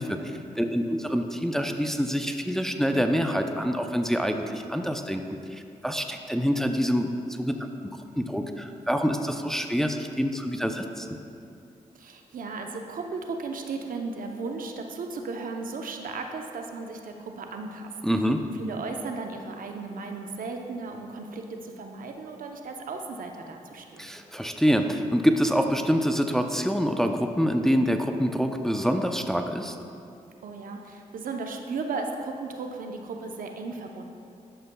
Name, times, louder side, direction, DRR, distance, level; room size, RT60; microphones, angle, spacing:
voice 1, 0.0-5.2 5.5-7.7 8.2-11.1 18.0-18.4 24.0-29.8, equal, 5° left, 5 dB, 0.5 m, -26 dB
voice 2, 11.9-17.9 18.6-24.1 30.4-34.0, right 4 dB, 70° right, 3 dB, 0.7 m, -35 dB
11.0 x 6.7 x 2.2 m, 2.5 s
cardioid pair, 50°, 15 cm